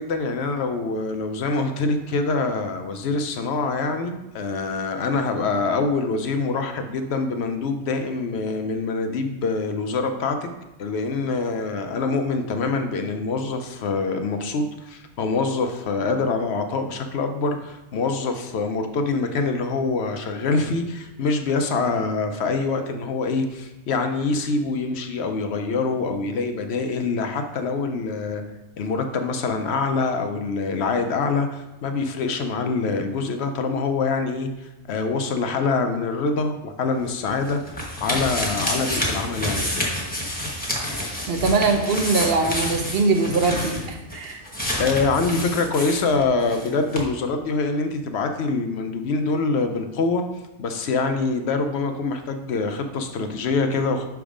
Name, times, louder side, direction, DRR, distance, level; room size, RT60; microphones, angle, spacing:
voice 1, 0.0-10.5 10.8-28.4 28.8-39.9 44.8-50.2 50.6-54.1, left 4 dB, 65° left, 6 dB, 0.8 m, -25 dB
sound 1, 37.0-46.7 46.9-47.0, equal, 10° left, 1.1 m, -28 dB
voice 2, 41.3-44.4, right 3 dB, 60° right, 4 dB, 0.8 m, -22 dB
6.2 x 3.5 x 4.9 m, 0.97 s
omnidirectional pair, 1.3 m